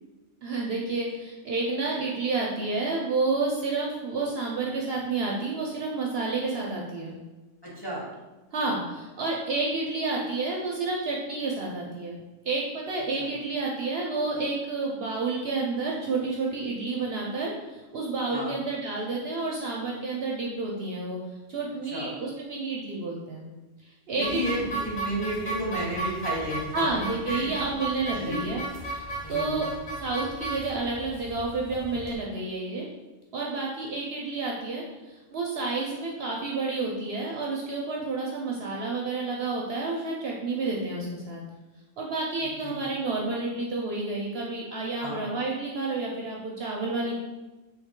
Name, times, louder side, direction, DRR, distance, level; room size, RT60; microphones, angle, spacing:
voice 1, 0.4-7.1 8.5-12.2 12.4-21.2 21.5-23.4 24.1-24.6 26.7-29.0 29.3-29.7 30.0-32.8 33.3-41.4 42.0-47.2, right 3 dB, 65° right, -2 dB, 0.7 m, -30 dB
voice 2, 7.6-8.1 13.2-13.3 18.3-18.6 21.9-22.1 24.2-27.0 27.3-27.6 28.2-28.4 29.2-29.6 42.6-42.8 45.0-45.2, equal, 20° left, -6 dB, 0.9 m, -32 dB
sound 1, 24.2-32.2, right 2 dB, 90° left, 1.3 m, -35 dB
3.5 x 3.1 x 3.6 m, 1.1 s
omnidirectional pair, 1.3 m